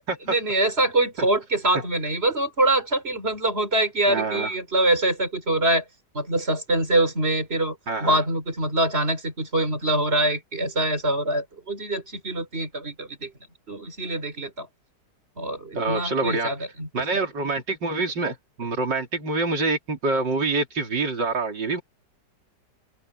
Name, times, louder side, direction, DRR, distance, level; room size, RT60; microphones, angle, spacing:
voice 1, 0.2-5.8 6.1-13.3 13.7-14.7 15.4-16.9, right 1 dB, 35° right, 5.0 m, -24 dB
voice 2, 4.1-4.5 7.9-8.2 15.7-16.5 16.9-21.8, right 3 dB, 80° right, 4.0 m, -26 dB
open air
omnidirectional pair, 1.9 m